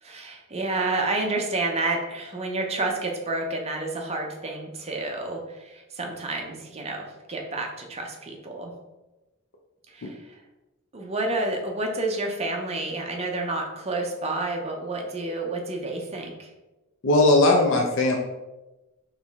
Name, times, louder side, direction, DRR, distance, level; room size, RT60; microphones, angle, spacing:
voice 1, 0.0-8.7 9.9-10.4 10.9-16.5, right 2 dB, 30° right, 1 dB, 0.6 m, -30 dB
voice 2, 17.0-18.2, left 2 dB, 60° left, 1 dB, 0.5 m, -18 dB
4.2 x 3.1 x 3.5 m, 1.1 s
head